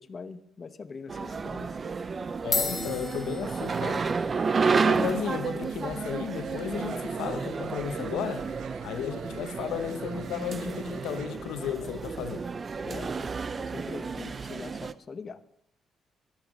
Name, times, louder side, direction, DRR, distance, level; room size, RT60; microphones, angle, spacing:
voice 1, 0.0-1.8 12.8-13.3 13.6-15.4, left 4 dB, 40° left, 0.9 m, -42 dB
sound 1, 0.9-1.2 2.0-2.1 2.4-11.0, left 3 dB, 20° left, 3.7 m, -40 dB
sound 2, 1.1-14.9, right 5 dB, 40° right, 0.6 m, -31 dB
voice 2, 2.4-4.1 4.8-8.5 8.8-12.4, left 10 dB, 85° left, 0.9 m, -34 dB
sound 3, 5.8-11.3, right 9 dB, 80° right, 1.0 m, -52 dB
13.0 x 12.0 x 5.2 m
cardioid pair, 90°, 0 cm